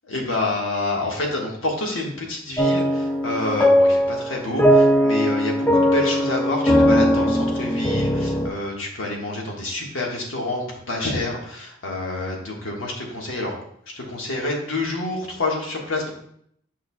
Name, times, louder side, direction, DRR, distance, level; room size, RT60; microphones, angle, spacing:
voice 1, 0.0-13.5 13.9-16.1, left 2 dB, 80° left, 0 dB, 1.5 m, -28 dB
sound 1, 2.6-8.5, equal, 10° left, 0.3 m, -19 dB
8.4 x 5.6 x 2.2 m, 0.68 s
head